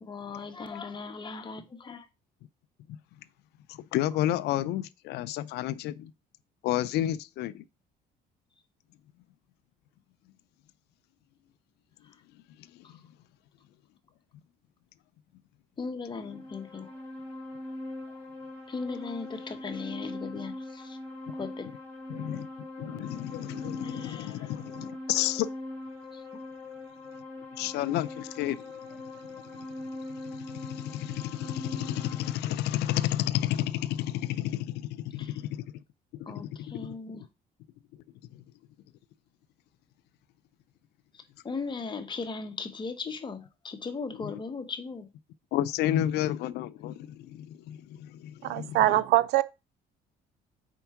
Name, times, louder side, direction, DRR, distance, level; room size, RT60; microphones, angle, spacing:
voice 1, 0.0-2.0 15.8-16.9 18.7-21.0 21.4-21.7 23.8-24.5 26.1-26.2 35.2-35.4 36.3-37.2 41.4-45.1 48.8-49.0, left 4 dB, 25° left, 1.1 m, -38 dB
voice 2, 3.7-6.1 6.6-7.6 12.9-13.0 22.1-22.5 22.8-25.5 27.6-28.6 28.9-29.0 29.5-29.7 30.2-35.6 36.2-37.0 38.3-38.4 44.2-44.3 45.5-48.8, left 13 dB, 80° left, 0.4 m, -31 dB
sound 1, 16.0-32.3, left 1 dB, 10° left, 3.0 m, -41 dB
voice 3, 48.4-49.4, right 15 dB, 80° right, 0.5 m, -23 dB
4.6 x 4.4 x 5.8 m
cardioid pair, 110°, 17 cm